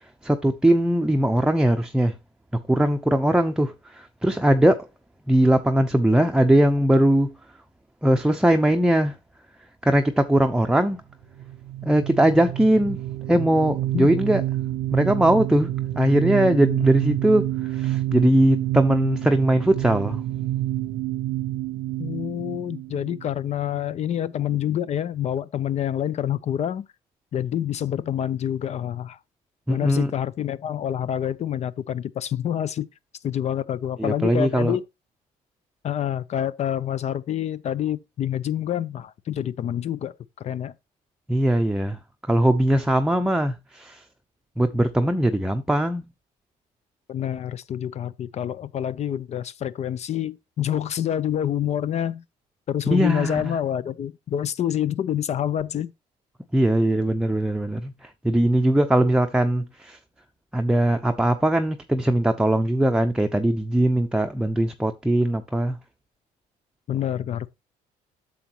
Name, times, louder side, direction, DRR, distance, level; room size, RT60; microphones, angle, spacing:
voice 1, 0.2-2.1 2.7-4.9 5.3-7.3 8.0-9.1 9.8-11.0 11.8-13.0 13.3-14.4 14.9-20.2 29.7-30.1 34.0-34.8 41.3-42.0 42.3-44.0 44.6-46.1 52.9-53.5 56.5-57.9 58.2-60.0 60.5-65.8, right 1 dB, 5° right, 0.7 m, -20 dB
sound 1, 11.4-23.8, right 14 dB, 90° right, 0.6 m, -28 dB
voice 2, 22.0-26.9 27.3-29.2 29.7-32.9 33.2-34.9 35.8-40.7 47.1-52.2 52.7-55.9 66.9-67.5, left 10 dB, 45° left, 0.6 m, -27 dB
8.6 x 7.0 x 3.0 m
cardioid pair, 110°, 16 cm